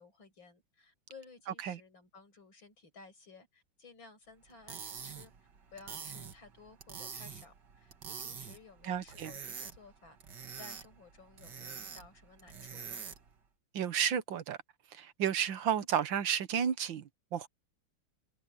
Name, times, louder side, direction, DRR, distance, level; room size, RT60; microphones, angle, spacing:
voice 1, 0.0-5.3 5.7-13.0, left 4 dB, 85° left, 6.5 m, -56 dB
sound 1, 4.5-13.4, right 6 dB, 65° right, 2.4 m, -46 dB
voice 2, 8.8-9.3 13.7-14.6 14.9-17.5, right 8 dB, 80° right, 1.9 m, -32 dB
omnidirectional pair, 2.0 m